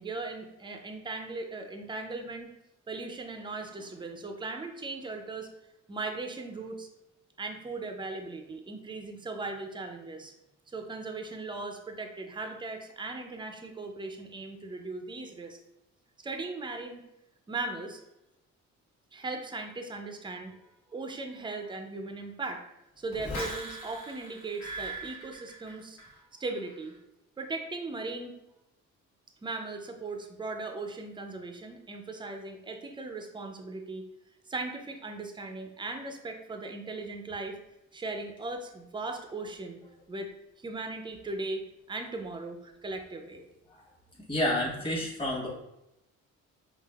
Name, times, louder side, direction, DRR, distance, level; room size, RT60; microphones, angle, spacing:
voice 1, 0.0-2.5 2.9-5.5 5.9-6.9 7.4-10.3 10.7-15.6 16.2-17.0 17.5-18.0 19.1-22.6 23.0-26.0 26.4-26.9 27.4-28.4 29.4-34.0 34.5-37.6 37.9-39.8 40.1-40.3 40.6-43.4, right 3 dB, 15° right, 5 dB, 0.5 m, -38 dB
sound 1, 23.1-26.2 26.5-26.9, right 1 dB, 60° left, 1.3 m, -40 dB
voice 2, 44.3-45.5, left 1 dB, 15° left, -4 dB, 1.2 m, -29 dB
5.0 x 2.5 x 2.3 m, 0.91 s
cardioid pair, 90°, 30 cm